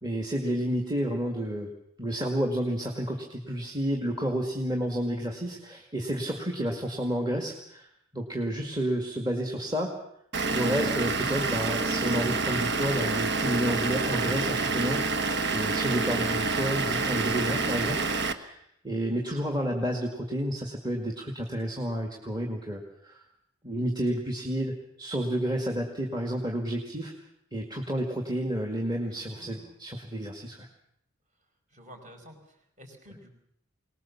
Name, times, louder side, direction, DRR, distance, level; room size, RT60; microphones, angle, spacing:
voice 1, 0.0-1.7 2.0-7.9 8.1-10.0 10.5-18.0 18.4-18.6 18.8-23.2 23.6-27.1 27.5-30.7, equal, 20° right, 1 dB, 2.1 m, -30 dB
Vehicle / Engine, 10.3-18.3, right 3 dB, 55° right, 1.3 m, -28 dB
voice 2, 29.0-29.8 31.7-33.3, equal, 35° right, 3 dB, 5.0 m, -51 dB
23.0 x 19.5 x 7.2 m, 0.73 s
head